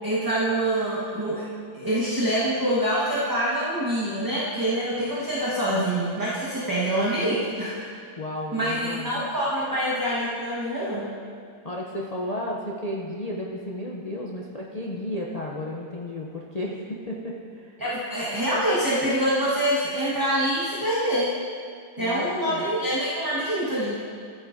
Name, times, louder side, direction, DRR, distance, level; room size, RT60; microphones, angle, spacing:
voice 1, 0.0-1.5 1.7-8.0 8.5-11.1 17.8-21.3 22.0-24.0, right 1 dB, 15° right, -9 dB, 1.3 m, -25 dB
voice 2, 8.2-9.2 11.6-17.7 22.0-22.7, left 1 dB, 55° left, -3 dB, 0.4 m, -33 dB
13.5 x 8.7 x 2.7 m, 2.3 s
omnidirectional pair, 1.7 m